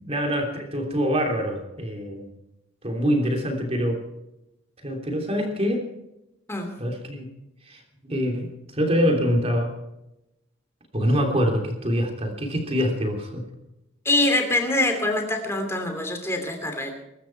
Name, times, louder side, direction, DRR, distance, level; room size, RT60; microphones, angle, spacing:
voice 1, 0.0-2.3 2.8-4.0 4.8-5.9 6.8-7.3 7.7-9.7 10.9-13.4, equal, 30° right, 2 dB, 3.1 m, -25 dB
voice 2, 14.0-16.9, left 2 dB, 10° left, 4 dB, 2.9 m, -24 dB
23.0 x 12.5 x 4.6 m, 0.90 s
head